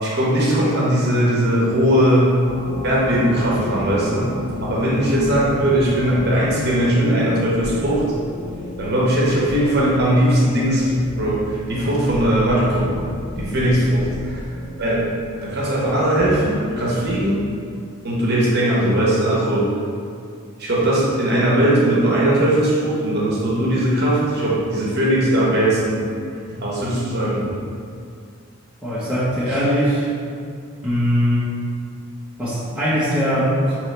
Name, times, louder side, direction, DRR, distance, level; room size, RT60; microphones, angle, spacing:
voice 1, 0.0-2.3 2.8-4.3 4.6-8.0 8.8-11.4 11.7-12.9 13.4-14.4 14.8-15.0 15.4-17.4 18.0-19.7 20.6-26.0 26.5-27.5 29.5-29.6, right 1 dB, 50° right, -6 dB, 0.8 m, -19 dB
sound 1, 2.4-17.5, left 1 dB, 20° left, 1.1 m, -32 dB
voice 2, 28.8-30.1 30.8-31.5 32.4-33.8, equal, 5° right, -11 dB, 0.8 m, -20 dB
5.4 x 3.0 x 3.2 m, 2.3 s
head